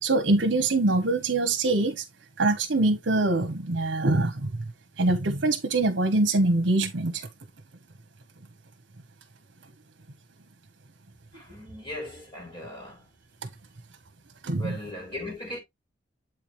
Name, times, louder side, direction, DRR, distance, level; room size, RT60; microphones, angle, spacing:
voice 1, 0.0-2.0 2.4-4.5 5.0-7.3 13.4-13.5 14.4-14.7, right 2 dB, 70° right, 1.0 m, -24 dB
voice 2, 11.3-13.0 14.6-15.6, left 1 dB, 25° left, 3.2 m, -38 dB
7.9 x 4.6 x 3.2 m
head